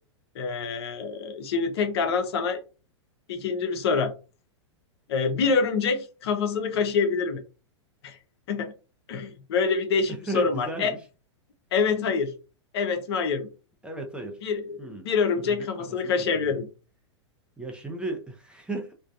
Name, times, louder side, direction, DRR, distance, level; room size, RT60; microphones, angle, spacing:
voice 1, 0.3-2.6 3.3-4.1 5.1-7.4 8.0-8.2 8.5-8.7 9.1-10.9 11.7-12.3 12.7-13.5 14.4-16.7, left 5 dB, 60° left, 0.6 m, -26 dB
voice 2, 10.3-11.0 13.8-14.4 14.8-15.0 15.4-16.6 17.6-18.9, right 2 dB, 5° right, 0.5 m, -35 dB
2.5 x 2.2 x 2.3 m
hypercardioid pair, 105°, 15 cm